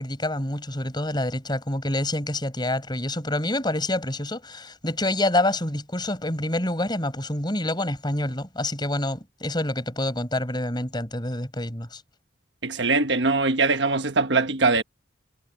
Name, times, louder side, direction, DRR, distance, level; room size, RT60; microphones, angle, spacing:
voice 1, 0.0-12.0, left 1 dB, 25° left, 5.3 m, -27 dB
voice 2, 12.6-14.8, right 3 dB, 65° right, 1.4 m, -22 dB
head